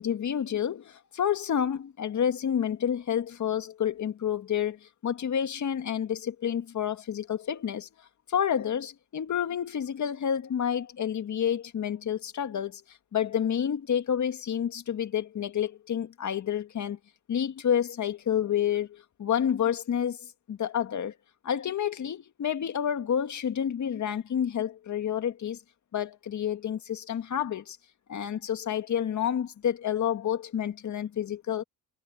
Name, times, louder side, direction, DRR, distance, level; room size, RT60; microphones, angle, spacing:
voice 1, 0.0-7.9 8.3-17.0 17.3-21.1 21.4-25.6 25.9-27.8 28.1-31.6, left 9 dB, 45° left, 2.0 m, -29 dB
supercardioid pair, 80°, 39 cm